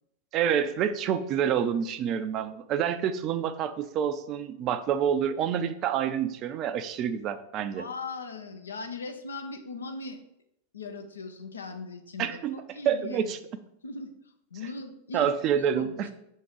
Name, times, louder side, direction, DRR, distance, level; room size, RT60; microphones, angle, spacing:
voice 1, 0.3-7.9 12.2-12.6 12.9-13.4 15.1-16.1, right 8 dB, 35° right, 11 dB, 0.4 m, -27 dB
voice 2, 7.8-10.2 10.7-13.4 13.8-14.1 14.5-15.9, left 3 dB, 70° left, 5 dB, 0.7 m, -39 dB
5.9 x 3.7 x 4.6 m, 0.78 s
figure-of-eight pair, 90°, 0 cm